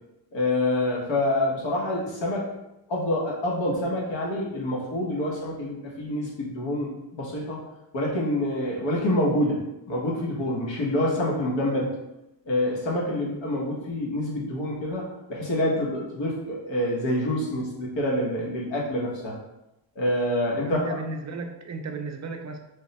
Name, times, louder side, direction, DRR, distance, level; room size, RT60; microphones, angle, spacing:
voice 1, 0.3-2.4 2.9-7.6 7.9-11.9 12.4-19.4 19.9-20.8, left 1 dB, 70° left, -3 dB, 1.2 m, -27 dB
voice 2, 20.6-22.6, right 3 dB, 40° right, 4 dB, 0.5 m, -34 dB
3.5 x 2.2 x 4.0 m, 0.91 s
cardioid pair, 95°, 47 cm